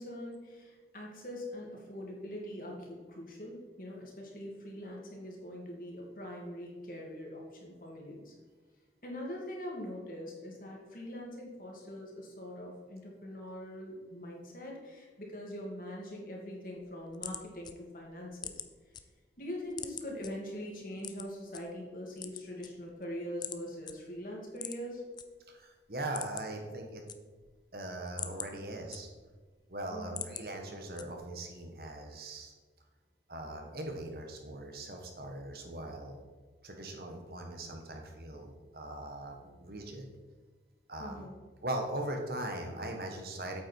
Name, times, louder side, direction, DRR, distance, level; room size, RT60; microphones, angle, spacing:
voice 1, 0.0-8.3 9.0-18.6 19.4-25.0 29.9-30.2 41.0-41.3, left 1 dB, 50° left, -2 dB, 2.5 m, -43 dB
sound 1, 16.8-19.0 19.4-20.3 21.0-21.6 22.1-23.0 23.4-23.6 23.9-24.0 24.5-25.2 25.6-25.7 26.0-26.6 26.9-27.6 28.0-29.4 29.8-30.5 31.0-31.4, left 8 dB, 25° left, 0.5 m, -43 dB
voice 2, 25.5-27.0 27.7-29.1 29.7-32.5 33.3-36.2 36.6-40.1 40.9-41.3 41.6-43.6, right 1 dB, 60° right, 3 dB, 1.5 m, -40 dB
8.6 x 8.3 x 4.7 m, 1.4 s
head